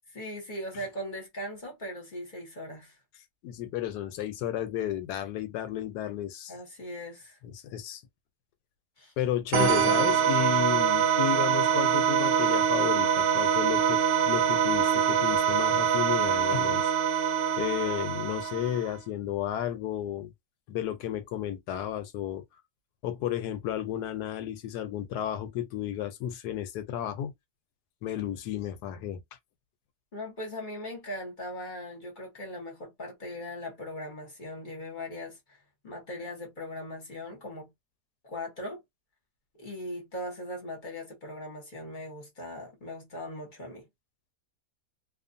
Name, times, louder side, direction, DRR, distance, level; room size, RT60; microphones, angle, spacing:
voice 1, 0.1-2.9 6.5-7.4 9.0-9.1 17.8-17.9 30.1-35.6 35.8-37.7 38.2-38.8 39.6-43.9, left 1 dB, 35° left, 1.1 m, -39 dB
voice 2, 3.4-6.5 7.4-8.0 9.2-16.9 17.6-20.3 20.7-22.4 23.0-27.3 28.0-29.2, left 11 dB, 80° left, 1.1 m, -33 dB
sound 1, 9.5-19.0, right 8 dB, 75° right, 1.1 m, -24 dB
2.6 x 2.4 x 2.5 m
omnidirectional pair, 1.7 m